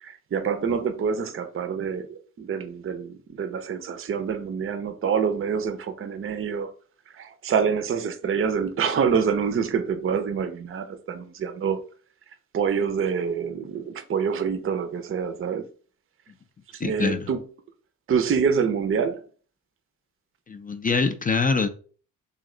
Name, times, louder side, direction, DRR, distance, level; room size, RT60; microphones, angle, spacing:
voice 1, 0.0-6.7 7.1-11.8 12.5-15.6 16.7-17.5 18.1-19.2, right 6 dB, 40° right, 0.5 m, -26 dB
voice 2, 16.8-17.3 20.5-21.7, left 4 dB, 25° left, 0.4 m, -24 dB
3.1 x 2.6 x 3.7 m
cardioid pair, 90°, 35 cm